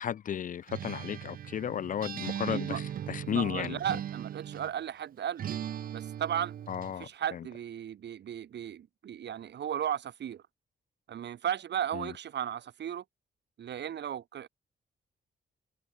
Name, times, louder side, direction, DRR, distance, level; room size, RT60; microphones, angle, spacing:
voice 1, 0.0-3.8 6.7-7.1 11.9-12.1, left 9 dB, 45° left, 0.4 m, -34 dB
Acoustic guitar, 0.7-4.8 5.4-7.0, right 10 dB, 50° right, 0.5 m, -38 dB
voice 2, 2.5-2.8 3.3-5.5 5.9-6.5 7.0-10.4 11.1-13.0 13.6-14.5, right 9 dB, 70° right, 1.6 m, -35 dB
wide cardioid pair, 165°, 19 cm